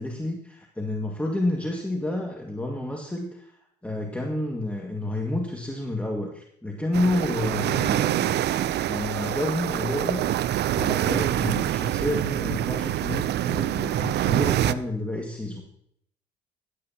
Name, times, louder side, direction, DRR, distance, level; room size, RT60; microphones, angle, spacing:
voice 1, 0.0-8.5 8.9-10.2 10.7-15.6, left 1 dB, 5° left, 0 dB, 2.0 m, -30 dB
sound 1, 6.9-14.7, right 12 dB, 60° right, 0.6 m, -25 dB
16.5 x 12.0 x 2.9 m, 0.70 s
supercardioid pair, 70°, 20 cm